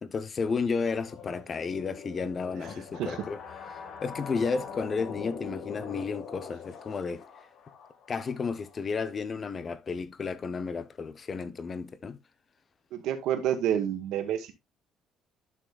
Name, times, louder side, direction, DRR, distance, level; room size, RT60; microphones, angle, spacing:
voice 1, 0.0-3.4 3.7-7.2 8.1-12.2, left 5 dB, 30° left, 0.8 m, -32 dB
sound 1, 0.8-9.1, left 6 dB, 55° left, 1.8 m, -43 dB
voice 2, 12.9-14.5, right 10 dB, 70° right, 1.6 m, -29 dB
11.0 x 6.3 x 2.4 m
cardioid pair, 140°, 0 cm